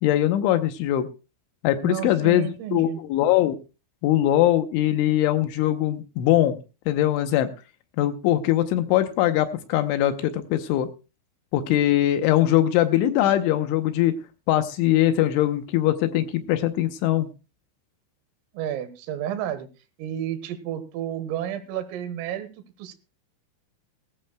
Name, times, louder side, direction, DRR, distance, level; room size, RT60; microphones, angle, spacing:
voice 1, 0.0-1.1 1.6-3.6 4.0-6.6 6.9-7.5 8.0-10.9 11.5-14.2 14.5-17.3, left 13 dB, 75° left, 9 dB, 3.1 m, -21 dB
voice 2, 1.8-3.0 18.5-19.7 20.0-22.5 22.8-22.9, right 10 dB, 85° right, 11 dB, 3.9 m, -31 dB
19.0 x 15.0 x 2.2 m, 0.30 s
omnidirectional pair, 5.9 m